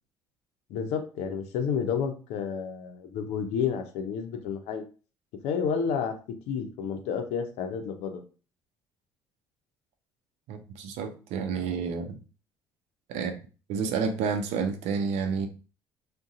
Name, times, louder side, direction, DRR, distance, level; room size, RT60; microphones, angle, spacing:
voice 1, 0.7-4.8 5.4-6.2 6.5-8.2, left 6 dB, 80° left, 0.6 m, -30 dB
voice 2, 10.5-12.2 13.1-13.3 13.7-15.5, right 5 dB, 75° right, 0.6 m, -30 dB
2.6 x 2.2 x 3.7 m
supercardioid pair, 65°, 11 cm